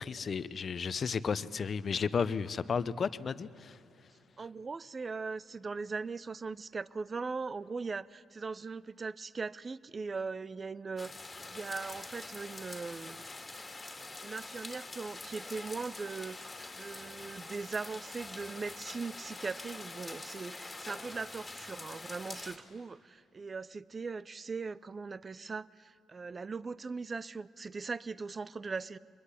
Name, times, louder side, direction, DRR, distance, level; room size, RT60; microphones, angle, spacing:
voice 1, 0.0-3.8, left 6 dB, 45° left, 16 dB, 0.8 m, -33 dB
voice 2, 4.4-11.1 11.5-13.2 14.2-29.0, right 4 dB, 35° right, 20 dB, 0.6 m, -40 dB
sound 1, 11.0-22.6, left 3 dB, 20° left, 2.7 m, -45 dB
24.0 x 21.5 x 9.9 m, 2.7 s
cardioid pair, 90°, 0 cm